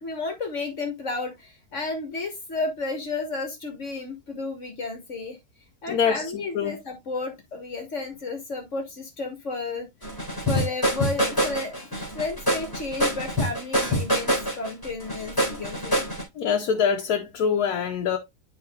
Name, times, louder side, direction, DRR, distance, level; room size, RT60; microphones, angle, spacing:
voice 1, 0.0-5.4 5.8-9.9 10.5-11.7 12.1-16.0, left 3 dB, 50° left, 1.6 m, -32 dB
voice 2, 5.9-6.8 16.4-18.2, left 7 dB, 80° left, 1.3 m, -24 dB
sound 1, 10.0-16.2, equal, 15° left, 3.2 m, -25 dB
11.0 x 3.7 x 2.3 m
omnidirectional pair, 1.7 m